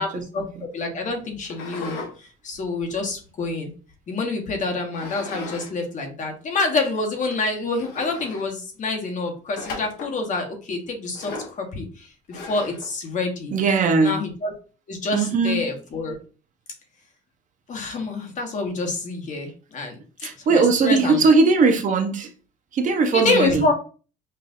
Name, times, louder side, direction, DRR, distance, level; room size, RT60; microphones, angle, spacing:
voice 1, 0.0-0.7 13.5-14.2 15.1-15.6 20.2-22.3 22.7-23.7, right 4 dB, 50° right, 6 dB, 0.7 m, -20 dB
voice 2, 0.7-3.7 4.1-13.5 14.0-14.5 14.9-16.2 17.7-21.2 23.1-23.7, left 3 dB, 45° left, 3 dB, 1.1 m, -27 dB
sound 1, 1.4-2.1 2.5-3.9 4.9-5.7 6.0-6.1 6.8-6.9 7.3-7.4 7.8-8.5 9.5-10.2 11.1-11.6 12.3-12.9, left 3 dB, 75° left, 1.2 m, -36 dB
5.4 x 2.5 x 2.5 m, 0.37 s
cardioid pair, 110°, 17 cm